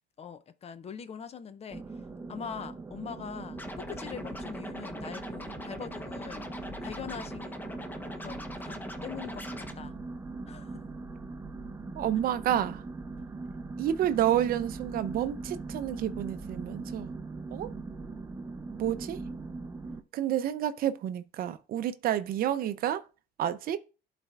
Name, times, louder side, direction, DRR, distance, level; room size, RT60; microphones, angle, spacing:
voice 1, 0.2-1.8 2.3-6.5 6.8-7.6 8.1-8.4 8.6-8.8 9.0-9.9 10.5-10.8, left 7 dB, 40° left, 0.6 m, -42 dB
sound 1, 1.7-20.0, right 3 dB, 15° right, 0.6 m, -41 dB
Scratching (performance technique), 3.5-9.7, left 1 dB, 10° left, 0.9 m, -41 dB
voice 2, 12.0-12.8 13.8-17.1 17.5-17.7 18.8-19.2 20.1-23.0 23.4-23.8, right 11 dB, 60° right, 0.6 m, -29 dB
12.0 x 4.2 x 2.4 m
cardioid pair, 110°, 17 cm